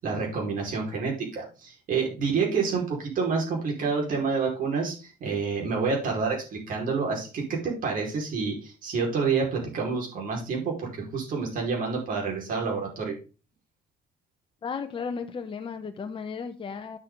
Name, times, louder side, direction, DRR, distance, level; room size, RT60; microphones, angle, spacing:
voice 1, 0.0-13.1, right 5 dB, 55° right, 5.1 m, -28 dB
voice 2, 14.6-17.0, left 5 dB, 30° left, 1.0 m, -34 dB
9.8 x 6.5 x 3.9 m
cardioid pair, 110°, 17 cm